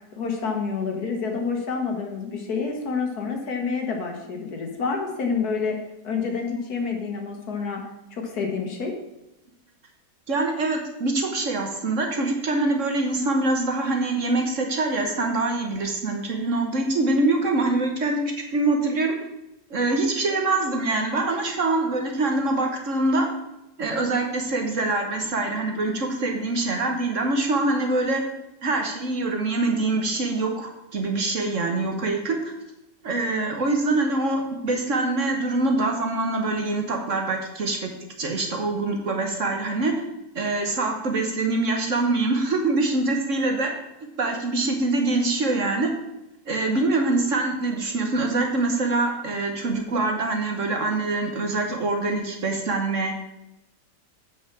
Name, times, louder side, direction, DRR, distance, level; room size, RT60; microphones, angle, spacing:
voice 1, 0.2-5.8 6.0-7.9 8.1-8.9, left 5 dB, 60° left, 2 dB, 1.9 m, -28 dB
voice 2, 10.3-18.2 18.5-19.2 19.7-23.3 23.8-28.2 28.6-32.5 33.0-37.9 38.2-39.9 40.3-43.7 44.2-45.9 46.4-53.1, right 2 dB, 50° right, 3 dB, 1.4 m, -24 dB
8.1 x 6.0 x 6.0 m, 0.91 s
omnidirectional pair, 1.8 m